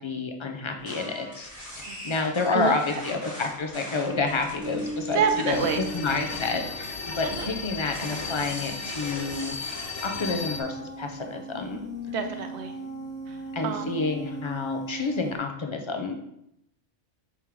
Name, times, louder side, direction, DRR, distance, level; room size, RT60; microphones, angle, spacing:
voice 1, 0.0-1.5 1.8-9.6 10.0-11.8 13.5-16.1, left 4 dB, 50° left, 4 dB, 0.3 m, -29 dB
sound 1, 0.8-10.0, equal, 15° left, 2.5 m, -42 dB
voice 2, 2.5-3.0 5.1-5.8 7.2-7.5 12.1-12.7 13.3-13.4 13.6-13.9, right 7 dB, 65° right, 6 dB, 0.9 m, -28 dB
sound 2, 4.6-15.4, right 1 dB, 10° right, 1.2 m, -38 dB
sound 3, 5.5-10.6, left 4 dB, 70° left, 1.1 m, -35 dB
7.4 x 3.5 x 3.6 m, 0.78 s
omnidirectional pair, 1.3 m